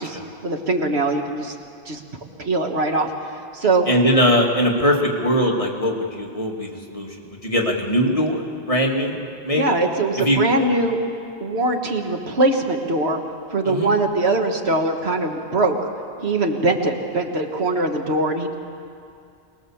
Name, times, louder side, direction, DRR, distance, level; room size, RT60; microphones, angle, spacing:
voice 1, 0.0-1.6 1.9-2.0 2.4-3.1 3.5-3.9 9.5-11.0 11.4-13.2 13.5-15.8 16.2-18.5, right 2 dB, 70° right, 3 dB, 1.8 m, -22 dB
voice 2, 3.9-9.8 10.2-10.4 13.6-14.0, equal, 30° left, -1 dB, 2.2 m, -21 dB
23.5 x 20.0 x 7.2 m, 2.4 s
omnidirectional pair, 1.1 m